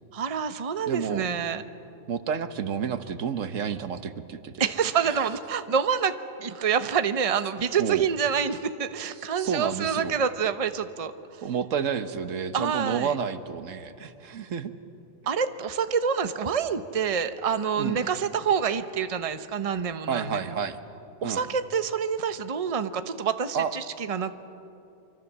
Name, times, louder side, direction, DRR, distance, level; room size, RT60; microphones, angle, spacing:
voice 1, 0.1-1.6 4.6-11.1 12.5-13.1 15.3-20.4 21.2-24.4, right 7 dB, 30° right, 10 dB, 0.8 m, -27 dB
voice 2, 0.9-1.3 2.1-4.7 5.0-5.2 7.8-8.0 9.3-10.2 11.4-14.7 17.8-18.0 20.1-20.8 21.2-21.4 23.5-23.7, right 7 dB, 85° right, 11 dB, 1.4 m, -30 dB
25.0 x 25.0 x 7.4 m, 2.8 s
omnidirectional pair, 1.3 m